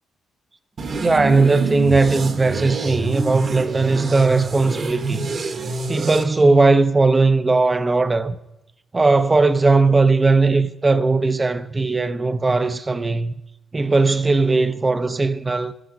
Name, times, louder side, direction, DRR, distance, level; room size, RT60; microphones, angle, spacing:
sound 1, 0.8-6.2, right 4 dB, 40° right, 1.2 m, -27 dB
voice 1, 1.0-5.3 5.9-8.4 8.9-13.3 13.7-15.7, right 3 dB, 20° right, 0.6 m, -18 dB
14.0 x 13.0 x 5.2 m
cardioid pair, 155°, 0 cm